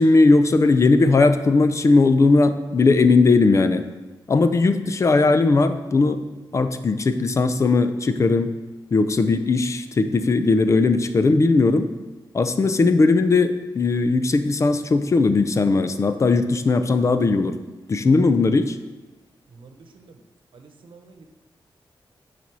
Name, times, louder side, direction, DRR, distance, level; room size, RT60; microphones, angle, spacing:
voice 1, 0.0-3.8 4.3-6.2 6.5-8.5 8.9-11.9 12.3-17.6 17.9-18.8, left 3 dB, 35° left, 10 dB, 0.5 m, -18 dB
voice 2, 19.5-20.2 20.5-21.3, right 4 dB, 75° right, 5 dB, 1.0 m, -48 dB
8.9 x 4.2 x 6.0 m, 1.2 s
wide cardioid pair, 160°, 9 cm